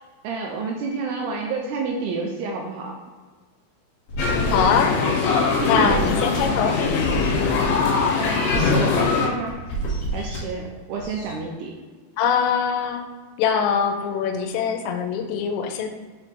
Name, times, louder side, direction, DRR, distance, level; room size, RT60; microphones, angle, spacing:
voice 1, 0.2-2.9 5.6-6.0 8.2-9.6 10.1-11.7, right 4 dB, 80° right, 1 dB, 2.4 m, -29 dB
sound 1, 4.1-4.6 5.2-5.3 5.5-6.5 6.8-7.6 8.2-9.0 9.5-10.4 11.0-11.3, right 1 dB, 50° left, 1.7 m, -29 dB
sound 2, 4.2-9.3, left 5 dB, 70° left, 3.0 m, -22 dB
voice 2, 4.5-5.0 5.7-6.8 12.2-13.0 13.4-15.9, left 7 dB, 90° left, 5 dB, 2.9 m, -22 dB
6.8 x 5.1 x 3.3 m, 1.5 s
omnidirectional pair, 5.0 m